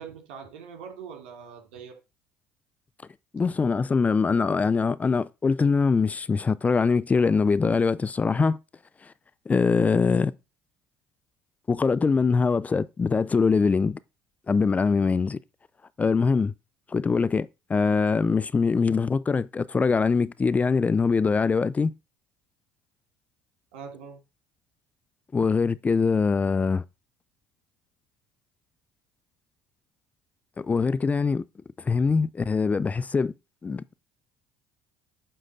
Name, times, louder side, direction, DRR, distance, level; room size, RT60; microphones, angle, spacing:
voice 1, 0.0-2.0 23.7-24.2, right 6 dB, 80° right, 2.9 m, -42 dB
voice 2, 3.3-8.6 9.5-10.3 11.7-14.0 14.5-15.4 16.0-16.5 16.9-21.9 25.3-26.8 30.6-31.4 31.9-33.3 33.6-33.9, left 4 dB, 25° left, 0.6 m, -23 dB
10.0 x 3.8 x 6.7 m
hypercardioid pair, 70°, 6 cm